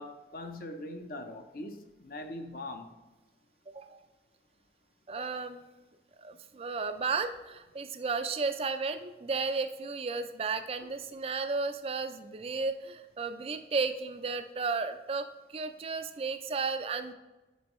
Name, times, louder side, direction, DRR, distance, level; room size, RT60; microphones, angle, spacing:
voice 1, 0.0-2.9, left 1 dB, 50° left, 6 dB, 0.7 m, -41 dB
voice 2, 3.7-4.0 5.1-5.7 6.2-15.3 15.5-17.1, right 4 dB, 35° right, 9 dB, 0.4 m, -33 dB
9.4 x 4.5 x 3.1 m, 1.1 s
head